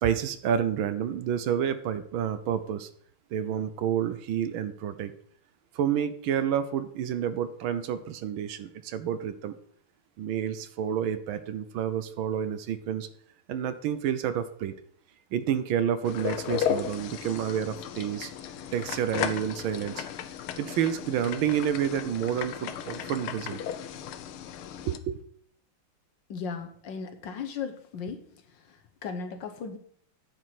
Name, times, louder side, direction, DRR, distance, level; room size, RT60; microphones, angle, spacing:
voice 1, 0.0-2.9 3.3-5.1 5.7-9.5 10.2-13.1 13.5-14.7 15.3-18.3 18.7-20.0 20.6-23.6 24.9-25.2, right 9 dB, 75° right, 12 dB, 1.5 m, -29 dB
sound 1, 16.0-25.0, left 9 dB, 85° left, 1.6 m, -35 dB
voice 2, 26.3-28.3 28.7-29.8, left 5 dB, 65° left, 7 dB, 1.5 m, -36 dB
9.8 x 4.8 x 7.6 m, 0.63 s
omnidirectional pair, 2.3 m